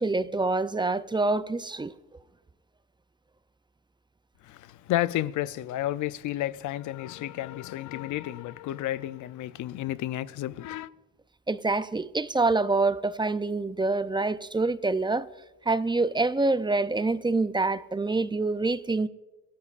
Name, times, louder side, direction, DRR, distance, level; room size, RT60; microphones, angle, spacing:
voice 1, 0.0-1.9 11.5-15.3 15.7-19.1, right 3 dB, 15° right, 0.5 m, -26 dB
voice 2, 4.4-10.9, left 14 dB, 80° left, 0.6 m, -31 dB
26.0 x 15.0 x 2.5 m
cardioid pair, 90°, 30 cm